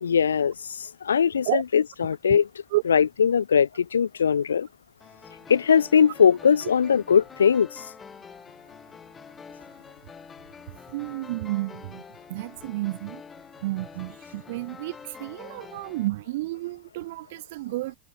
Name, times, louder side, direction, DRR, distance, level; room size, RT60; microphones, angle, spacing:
voice 1, 0.0-2.5 2.8-4.7 5.5-7.8, left 7 dB, 80° left, 0.5 m, -21 dB
sound 1, 5.0-16.1, left 5 dB, 20° left, 5.9 m, -46 dB
voice 2, 10.9-12.0 12.3-13.2 13.6-18.0, right 18 dB, 65° right, 0.5 m, -31 dB
open air
hypercardioid pair, 90°, 0 cm